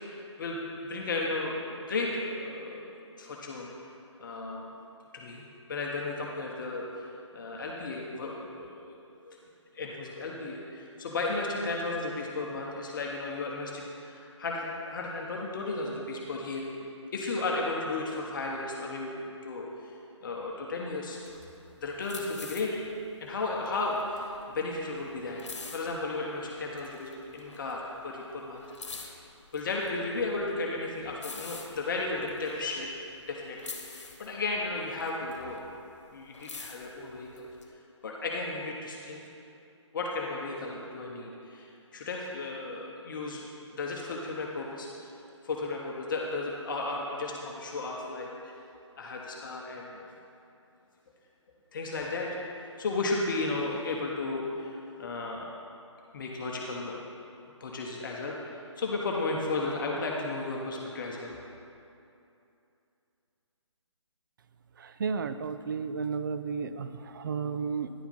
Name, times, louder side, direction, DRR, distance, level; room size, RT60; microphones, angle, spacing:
voice 1, 0.0-2.8 3.2-3.7 4.2-4.6 5.1-5.4 5.7-7.1 7.3-9.0 9.2-9.4 9.7-16.7 17.1-19.1 19.4-19.9 20.2-21.2 21.8-22.7 23.2-25.4 25.7-28.6 29.5-32.9 33.3-35.6 36.1-37.5 38.0-39.2 39.9-43.5 43.7-44.9 45.4-48.5 49.0-50.1 51.7-52.4 52.8-55.5 56.1-57.1 57.6-61.3, left 3 dB, 40° left, -1 dB, 0.8 m, -34 dB
sound 1, 21.2-26.4 26.8-28.1 28.3-33.3 33.6-35.8 36.1-37.6, left 4 dB, 70° left, 1.1 m, -46 dB
voice 2, 64.8-67.9, right 5 dB, 45° right, 11 dB, 0.4 m, -33 dB
10.0 x 4.7 x 5.3 m, 2.7 s
figure-of-eight pair, 150°, 16 cm